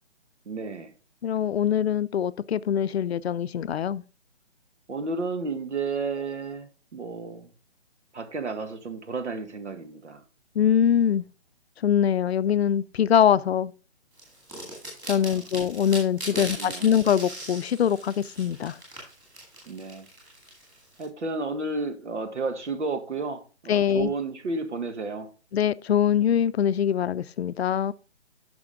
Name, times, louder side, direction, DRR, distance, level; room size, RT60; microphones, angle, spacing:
voice 1, 0.5-0.9 4.9-7.5 8.1-10.2 16.3-16.8 19.7-20.1 21.0-25.3, right 3 dB, 85° right, 1.7 m, -32 dB
voice 2, 1.2-4.0 10.6-11.2 11.8-13.7 15.1-18.8 23.7-24.1 25.5-27.9, left 9 dB, 65° left, 0.5 m, -23 dB
sound 1, 14.2-21.0, right 1 dB, 10° right, 2.1 m, -40 dB
9.8 x 6.1 x 3.6 m
hypercardioid pair, 175°, 34 cm